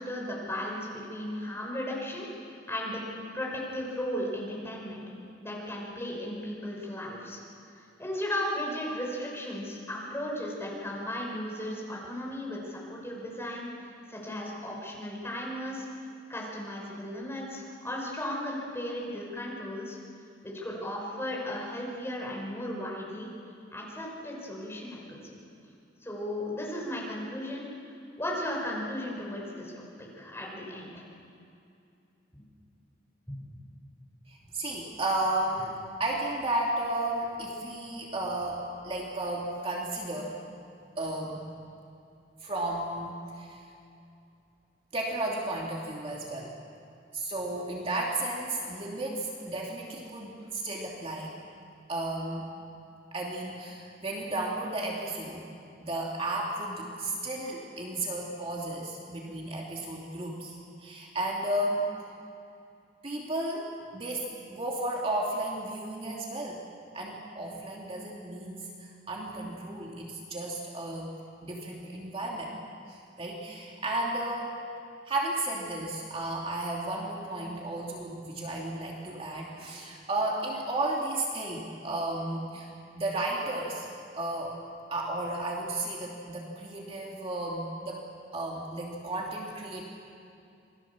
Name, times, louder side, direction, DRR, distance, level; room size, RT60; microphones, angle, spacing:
voice 1, 0.0-3.0 3.3-5.0 5.4-7.4 7.7-13.7 14.1-15.9 16.3-20.0 20.4-23.3 23.7-25.3 26.0-27.7 28.2-29.7 30.2-31.0 32.3-32.5 33.3-33.4, left 1 dB, 15° left, -3 dB, 5.9 m, -35 dB
voice 2, 34.3-35.7 36.0-40.4 41.0-41.5 42.4-43.6 44.9-46.5 47.1-51.3 51.9-52.5 53.1-55.5 55.8-61.9 63.0-66.6 66.9-71.2 71.4-72.5 72.9-74.6 75.1-82.7 82.9-83.9 84.1-84.6 84.9-88.0 88.3-89.8, right 2 dB, 35° right, -2 dB, 2.7 m, -33 dB
27.5 x 21.0 x 7.3 m, 2.6 s
head